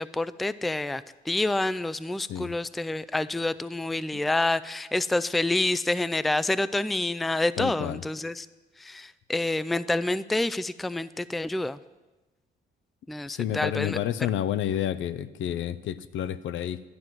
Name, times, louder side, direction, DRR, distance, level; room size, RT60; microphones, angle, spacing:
voice 1, 0.0-8.5 8.8-11.8 13.1-14.0, left 2 dB, ahead, 15 dB, 0.3 m, -28 dB
voice 2, 7.6-8.0 13.3-16.8, left 11 dB, 75° left, 14 dB, 0.6 m, -30 dB
12.0 x 9.4 x 6.0 m, 1.1 s
cardioid pair, 90°, 20 cm